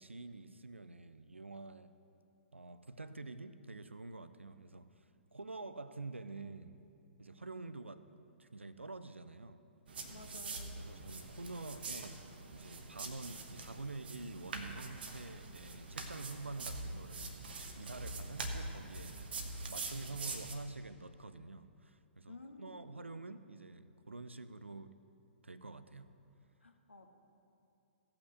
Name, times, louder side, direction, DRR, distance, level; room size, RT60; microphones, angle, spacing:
voice 1, 0.0-1.9 2.5-5.1 5.3-6.8 7.2-8.1 8.4-9.6 10.8-17.5 17.8-19.2 19.7-24.9 25.4-26.1, right 3 dB, 80° right, 13 dB, 0.5 m, -47 dB
sound 1, 9.9-20.5, right 3 dB, 55° right, 1.1 m, -44 dB
voice 2, 10.1-10.9 16.2-16.3 22.3-22.9 26.6-27.1, left 2 dB, 75° left, 5 dB, 1.1 m, -53 dB
16.0 x 5.9 x 6.4 m, 2.7 s
figure-of-eight pair, 120°, 6 cm